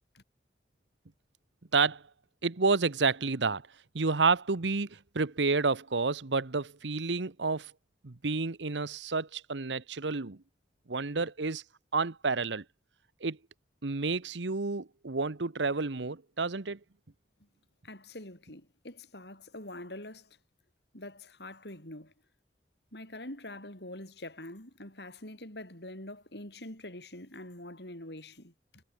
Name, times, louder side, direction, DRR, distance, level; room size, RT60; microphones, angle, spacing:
voice 1, 1.7-2.0 2.4-3.7 3.9-7.7 8.0-10.4 10.9-11.6 11.9-12.6 13.2-13.4 13.8-16.8, right 4 dB, 90° right, 1.1 m, -30 dB
voice 2, 17.8-20.4 20.9-22.1 22.9-28.8, left 1 dB, 70° left, 7.3 m, -45 dB
head